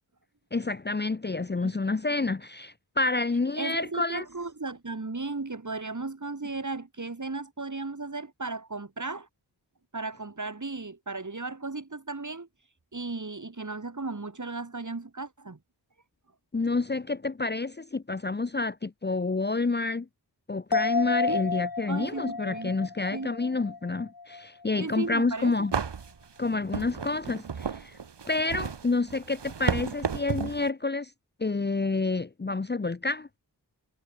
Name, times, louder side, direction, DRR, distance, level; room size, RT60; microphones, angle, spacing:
voice 1, 0.5-4.2 16.5-20.1 20.5-25.7 26.4-28.0 28.3-31.1 31.4-33.3, left 3 dB, 25° left, 0.8 m, -29 dB
voice 2, 1.6-2.0 3.6-9.3 9.9-12.5 12.9-15.6 21.3-21.4 21.9-22.8 23.1-23.3 24.8-25.5, right 3 dB, 45° right, 7.2 m, -35 dB
sound 1, 20.7-24.4 24.8-24.9, left 4 dB, 60° left, 5.5 m, -31 dB
sound 2, 25.1-25.2 25.7-30.7, right 6 dB, 85° right, 2.5 m, -33 dB
wide cardioid pair, 65°, 40 cm